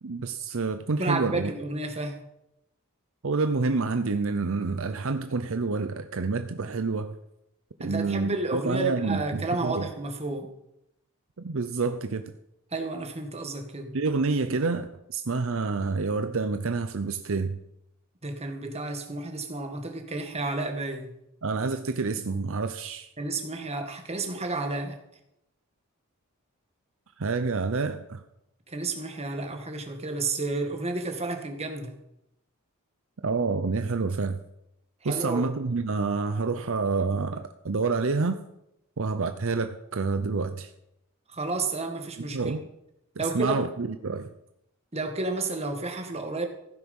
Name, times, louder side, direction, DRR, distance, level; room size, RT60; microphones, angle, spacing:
voice 1, 0.0-1.5 3.2-7.2 7.8-9.9 11.4-12.2 13.9-17.6 21.4-23.1 27.2-28.2 33.2-34.4 35.0-38.4 39.0-40.7 42.3-42.6 43.2-44.3, right 4 dB, 60° right, 9 dB, 0.7 m, -28 dB
voice 2, 1.0-2.2 7.8-10.5 12.7-14.0 18.2-21.2 23.2-25.0 28.7-32.0 35.0-35.4 41.3-42.5 43.2-43.6 44.9-46.5, right 2 dB, 30° right, 4 dB, 1.8 m, -31 dB
15.5 x 9.5 x 5.4 m, 0.83 s
head